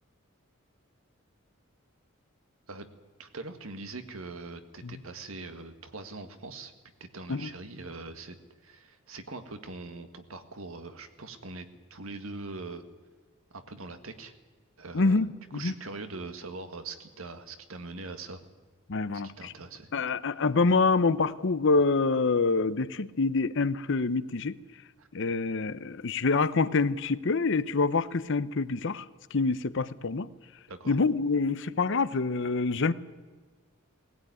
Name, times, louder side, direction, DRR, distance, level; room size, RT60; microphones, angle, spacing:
voice 1, 3.2-6.7 7.1-8.4 8.6-11.7 11.9-12.8 13.5-14.3 14.8-15.2 15.5-18.4 19.4-19.9 25.0-25.1 30.7-31.0, right 3 dB, 75° right, 8 dB, 1.8 m, -42 dB
voice 2, 14.9-15.7 18.9-19.5 19.9-24.6 25.1-29.0 29.3-30.3 30.9-32.9, left 4 dB, 60° left, 15 dB, 0.7 m, -26 dB
19.0 x 16.5 x 9.5 m, 1.4 s
head